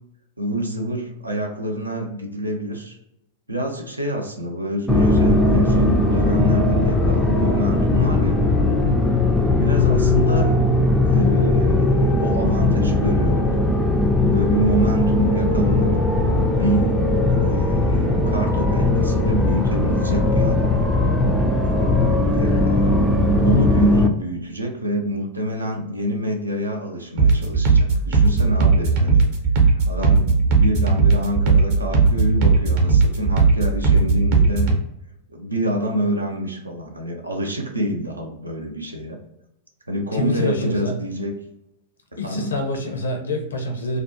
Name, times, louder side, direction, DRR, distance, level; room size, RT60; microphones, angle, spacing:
voice 1, 0.4-3.0 3.5-8.4 9.6-10.6 11.0-13.7 14.3-15.9 16.4-17.0 17.3-20.8 22.3-23.2 23.4-29.3 29.9-34.8 35.3-39.2 39.9-41.3 42.2-42.5, equal, 85° right, 2 dB, 0.5 m, -27 dB
sound 1, 4.9-24.1, left 2 dB, 10° left, 0.3 m, -18 dB
sound 2, 27.2-34.8, right 4 dB, 50° right, 0.7 m, -17 dB
voice 2, 40.1-41.0 42.2-44.0, left 2 dB, 75° left, 2 dB, 0.6 m, -26 dB
2.4 x 2.1 x 2.6 m, 0.81 s
figure-of-eight pair, 95°, 0 cm